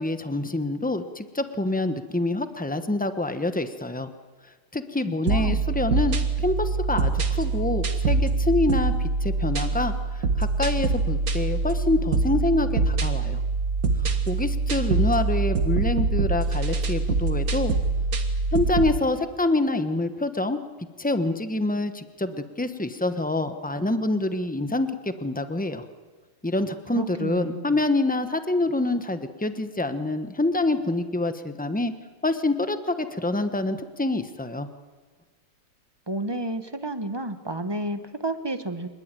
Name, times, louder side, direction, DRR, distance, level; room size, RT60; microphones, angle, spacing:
voice 1, 0.0-4.1 4.7-13.4 14.0-17.7 18.5-20.6 21.0-25.8 26.4-31.9 32.2-34.7, left 2 dB, 10° left, 9 dB, 0.5 m, -26 dB
voice 2, 5.1-5.7 26.9-27.7 36.1-38.9, right 1 dB, 15° right, 9 dB, 0.9 m, -31 dB
sound 1, 5.3-19.0, right 3 dB, 45° right, 1.8 m, -24 dB
25.5 x 20.5 x 9.1 m, 1.4 s
omnidirectional pair, 2.3 m